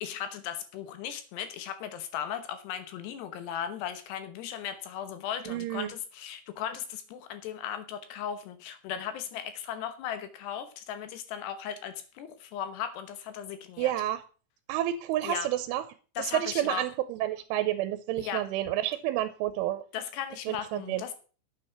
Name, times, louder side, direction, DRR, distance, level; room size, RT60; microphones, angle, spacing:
voice 1, 0.0-13.9 15.2-15.5 16.2-16.9 18.2-18.4 19.9-21.1, left 9 dB, 75° left, 10 dB, 2.9 m, -37 dB
voice 2, 5.5-5.9 13.8-14.2 14.7-15.8 16.2-19.8 20.5-21.0, right 13 dB, 85° right, 11 dB, 3.2 m, -30 dB
8.9 x 8.3 x 5.9 m, 0.38 s
omnidirectional pair, 5.4 m